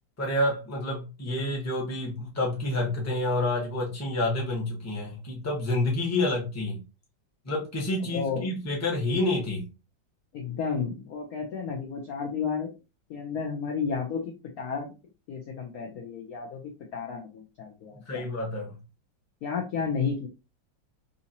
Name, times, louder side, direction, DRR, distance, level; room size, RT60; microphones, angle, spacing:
voice 1, 0.2-6.8 7.4-9.6 18.1-18.7, left 2 dB, 10° left, -3 dB, 0.8 m, -28 dB
voice 2, 8.1-8.5 10.3-12.7 13.1-14.2 14.6-14.9 15.3-18.2 19.4-20.3, left 6 dB, 65° left, 1 dB, 0.9 m, -32 dB
3.8 x 2.8 x 2.8 m, 0.28 s
omnidirectional pair, 2.2 m